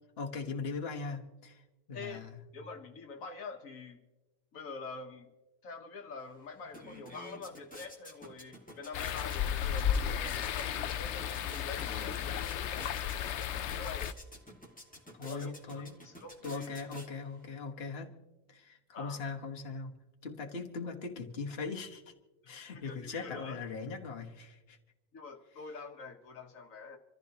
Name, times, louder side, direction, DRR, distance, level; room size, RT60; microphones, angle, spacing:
voice 1, 0.2-2.4 15.2-16.0 16.4-18.1 18.5-20.0 20.2-22.1 22.5-24.8, left 4 dB, 50° left, 2 dB, 1.5 m, -40 dB
voice 2, 1.9-2.2 2.5-4.0 4.5-5.3 5.6-14.1 15.3-15.5 15.8-16.7 18.9-19.2 22.4-23.6 25.1-27.0, left 4 dB, 80° left, 4 dB, 1.5 m, -46 dB
sound 1, 6.2-6.3 6.6-17.5, equal, 5° left, 2.0 m, -51 dB
sound 2, 8.9-14.1, left 9 dB, 65° left, 0.9 m, -34 dB
26.5 x 14.5 x 2.9 m, 1.1 s
omnidirectional pair, 1.4 m